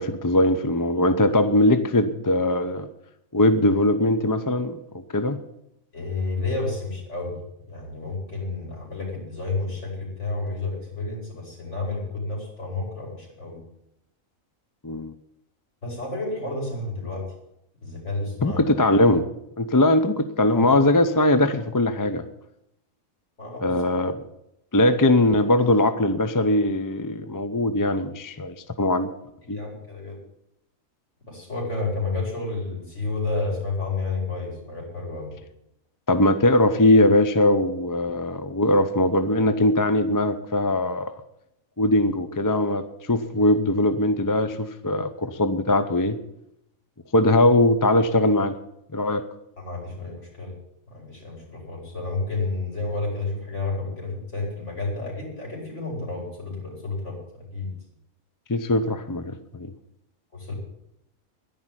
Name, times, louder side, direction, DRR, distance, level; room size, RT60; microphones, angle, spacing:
voice 1, 0.0-2.9 3.3-4.8 5.1-5.4 14.8-15.1 18.4-19.2 19.6-22.2 23.6-24.1 24.7-29.1 29.5-29.6 36.1-41.1 41.8-46.2 47.1-48.6 48.9-49.2 58.5-59.7, left 1 dB, 20° left, 10 dB, 0.6 m, -21 dB
voice 2, 5.9-7.4 7.7-13.6 15.8-17.2 17.8-18.6 20.5-20.8 23.4-23.9 29.5-30.2 31.3-35.3 49.6-50.5 50.9-57.7 60.3-60.5, left 3 dB, 55° left, -1 dB, 5.5 m, -31 dB
11.0 x 10.5 x 9.1 m, 0.80 s
omnidirectional pair, 1.4 m